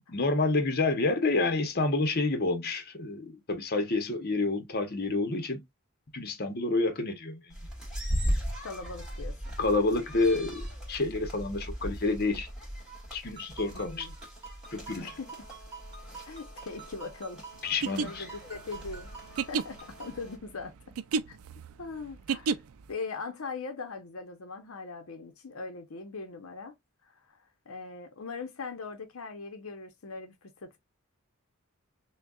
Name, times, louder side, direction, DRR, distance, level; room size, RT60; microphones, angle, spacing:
voice 1, 0.1-5.6 6.1-7.5 9.6-12.5 13.1-14.1 14.7-15.1 17.6-18.2, left 3 dB, 45° left, 0.9 m, -28 dB
sound 1, 7.5-20.4, equal, 5° right, 1.9 m, -38 dB
voice 2, 8.6-9.5 13.7-14.1 15.0-15.3 16.2-17.4 17.9-19.1 19.5-20.7 21.3-21.4 21.8-22.6 22.9-26.7 27.1-27.4 27.7-30.8, left 4 dB, 75° left, 0.8 m, -40 dB
Ringtone, 13.4-20.2, right 5 dB, 25° right, 1.6 m, -48 dB
sound 2, 17.7-22.9, right 5 dB, 85° right, 0.4 m, -32 dB
6.1 x 2.3 x 2.3 m
head